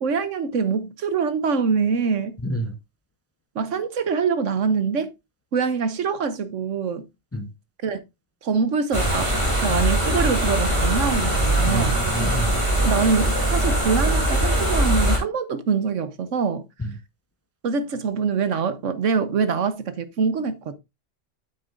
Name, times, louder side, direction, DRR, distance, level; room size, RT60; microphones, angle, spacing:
voice 1, 0.0-2.4 3.5-5.1 5.5-7.1 7.8-8.0 8.4-9.3 9.6-12.0 12.8-16.7 17.6-20.7, right 5 dB, 75° right, 1.3 m, -24 dB
voice 2, 2.4-2.7 7.3-7.5 11.7-12.6 16.8-16.9, equal, 15° left, 0.7 m, -28 dB
sound 1, 8.9-15.2, right 1 dB, 25° right, 2.8 m, -21 dB
9.2 x 8.0 x 2.5 m
omnidirectional pair, 1.3 m